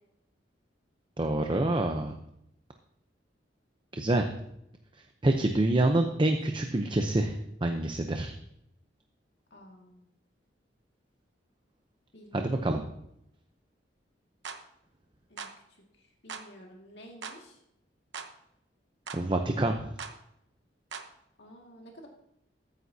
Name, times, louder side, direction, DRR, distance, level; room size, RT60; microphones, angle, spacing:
voice 1, 1.2-2.2 3.9-4.3 5.2-7.4 7.6-8.3 12.3-12.8 19.1-19.9, right 2 dB, 25° right, 5 dB, 0.7 m, -26 dB
voice 2, 5.7-6.2 9.5-10.1 12.1-12.9 15.3-15.5 15.9-17.6 21.4-22.1, equal, 70° left, 0 dB, 2.0 m, -51 dB
sound 1, 14.4-14.6 15.4-15.6 16.3-16.5 17.2-17.4 18.1-18.3 19.1-19.2 20.0-20.2 20.9-21.1, right 5 dB, 80° right, 1.0 m, -40 dB
14.5 x 9.4 x 2.8 m, 0.78 s
head